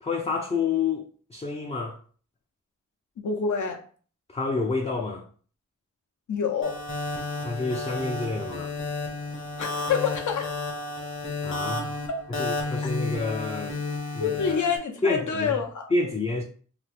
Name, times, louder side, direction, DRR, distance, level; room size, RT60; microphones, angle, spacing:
voice 1, 0.0-2.0 4.3-5.3 7.4-8.7 11.4-11.9 12.4-13.8 14.1-14.6 15.0-15.6 15.9-16.4, left 3 dB, 20° left, 0.4 m, -28 dB
voice 2, 3.2-3.8 6.3-6.8 9.6-10.5 14.2-15.9, left 6 dB, 70° left, 0.7 m, -27 dB
sound 1, 6.6-14.8, left 3 dB, 40° left, 0.9 m, -32 dB
2.8 x 2.0 x 3.2 m
cardioid pair, 65°, 31 cm